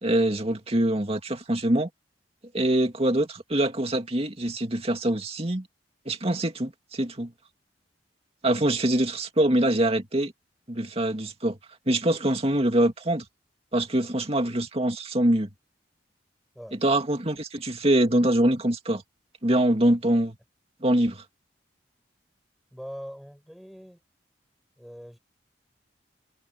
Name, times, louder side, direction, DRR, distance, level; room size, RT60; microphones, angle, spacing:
voice 1, 0.0-1.9 2.5-5.7 6.1-7.3 8.4-10.3 10.7-11.6 11.9-13.2 13.7-15.5 16.7-19.0 19.4-20.4 20.8-21.2, right 1 dB, 35° right, 2.4 m, -24 dB
voice 2, 22.7-24.0 24.8-25.2, equal, ahead, 7.1 m, -42 dB
head